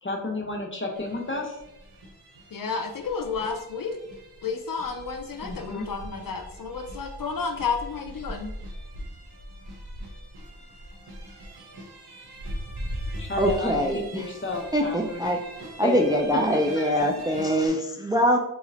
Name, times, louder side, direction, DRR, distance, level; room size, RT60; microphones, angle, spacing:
voice 1, 0.0-1.6 5.4-5.9 13.2-15.3 15.8-16.2 16.8-16.9, left 2 dB, 30° left, 1 dB, 0.8 m, -31 dB
sound 1, 0.9-17.7, equal, 70° right, 0.9 m, -40 dB
voice 2, 2.5-4.0 4.4-8.5, left 5 dB, 55° left, 4 dB, 0.5 m, -31 dB
voice 3, 13.4-14.3 14.7-15.4 15.8-18.4, equal, 10° right, 2 dB, 0.3 m, -23 dB
4.0 x 3.0 x 2.4 m, 0.90 s
cardioid pair, 40°, 40 cm